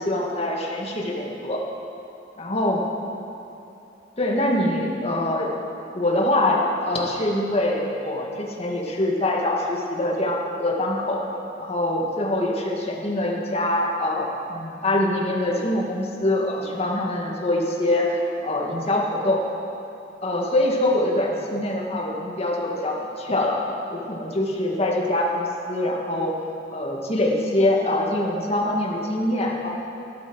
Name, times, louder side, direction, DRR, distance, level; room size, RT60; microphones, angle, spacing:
voice 1, 0.0-1.6 2.4-2.8 4.2-5.5 5.9-11.2 11.6-19.4 20.2-23.6 23.9-26.3 26.7-29.7, left 1 dB, 35° left, -1 dB, 1.9 m, -24 dB
12.5 x 12.5 x 6.3 m, 2.8 s
head